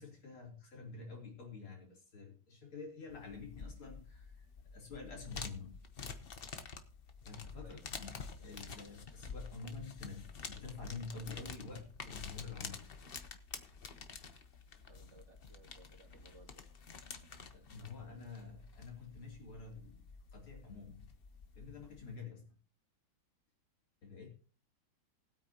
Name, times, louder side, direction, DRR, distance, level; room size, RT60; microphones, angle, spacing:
voice 1, 0.0-4.5 4.7-5.8 7.2-12.9 14.8-14.9 17.5-20.0 20.3-21.1 21.6-22.6 24.0-24.3, left 4 dB, 80° left, -1 dB, 4.1 m, -48 dB
sound 1, 3.1-22.2, left 5 dB, 50° left, 0.7 m, -49 dB
voice 2, 14.9-16.7, right 2 dB, 55° right, 0 dB, 3.4 m, -60 dB
19.5 x 8.8 x 2.9 m, 0.37 s
omnidirectional pair, 2.3 m